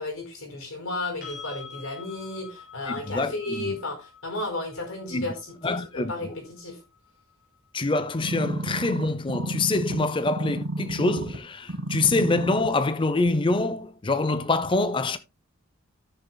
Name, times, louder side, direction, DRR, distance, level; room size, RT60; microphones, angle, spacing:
voice 1, 0.0-6.8, left 2 dB, 90° left, 4.5 m, -33 dB
sound 1, 1.2-9.0 11.8-11.9, left 6 dB, 45° left, 6.1 m, -48 dB
voice 2, 3.1-3.7 5.1-5.3 5.6-6.1 7.7-15.2, left 2 dB, 25° left, 0.5 m, -25 dB
sound 2, 8.2-11.4 11.7-12.7 13.3-13.4, right 1 dB, 80° right, 1.6 m, -31 dB
16.5 x 6.4 x 2.2 m
head